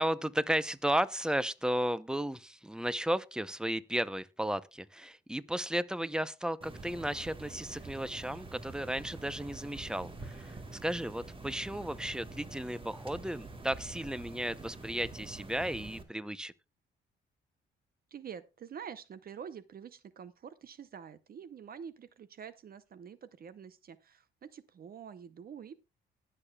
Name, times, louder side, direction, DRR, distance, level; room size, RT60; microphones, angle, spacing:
voice 1, 0.0-16.5, right 1 dB, 5° right, 0.6 m, -34 dB
sound 1, 6.6-16.0, right 3 dB, 25° right, 1.9 m, -46 dB
voice 2, 18.1-25.7, right 7 dB, 50° right, 0.7 m, -47 dB
20.0 x 6.8 x 2.3 m
cardioid pair, 90°, 20 cm